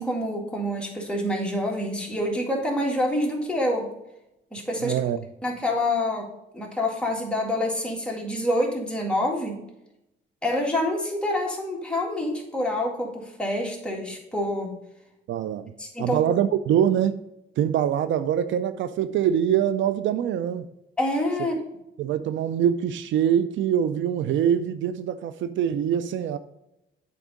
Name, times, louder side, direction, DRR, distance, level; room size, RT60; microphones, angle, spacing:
voice 1, 0.0-3.9 4.5-5.0 5.4-6.3 6.5-9.6 10.4-14.8 15.8-16.2 21.0-21.6, left 1 dB, 5° left, 2.0 m, -27 dB
voice 2, 4.8-5.2 15.3-15.7 16.0-17.2 17.6-20.7 21.4-21.5 22.0-26.4, right 9 dB, 70° right, 0.5 m, -24 dB
8.3 x 3.6 x 5.1 m
cardioid pair, 90°, 20 cm